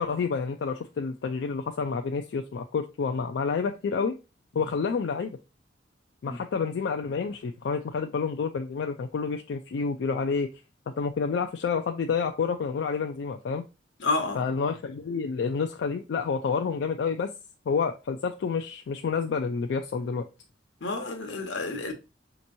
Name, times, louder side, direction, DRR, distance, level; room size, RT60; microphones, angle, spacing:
voice 1, 0.0-4.1 4.5-5.4 6.2-10.5 10.9-13.6 14.4-17.3 17.7-20.2, left 5 dB, 65° left, 0.3 m, -29 dB
voice 2, 14.0-14.4 20.8-21.9, left 3 dB, 90° left, 0.9 m, -30 dB
5.2 x 2.9 x 2.5 m
head